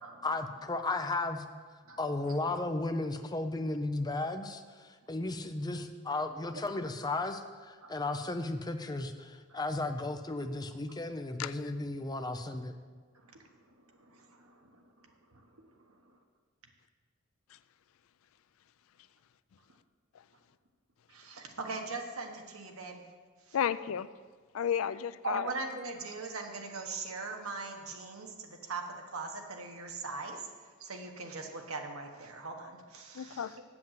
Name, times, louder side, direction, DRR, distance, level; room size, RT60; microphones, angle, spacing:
voice 1, 0.2-1.4 2.0-4.6 5.1-12.7, left 2 dB, 20° left, 7 dB, 0.6 m, -34 dB
voice 2, 1.9-2.4 7.8-7.9 9.5-9.6 13.1-13.5 14.0-15.4 16.0-16.1 21.1-23.0 23.5-23.6 25.2-30.5 30.8-33.6, right 3 dB, 85° right, 3 dB, 1.4 m, -41 dB
voice 3, 11.4-11.7 23.5-24.1 24.5-25.5 33.1-33.5, left 8 dB, 75° left, 15 dB, 0.4 m, -32 dB
7.8 x 7.7 x 7.4 m, 1.5 s
head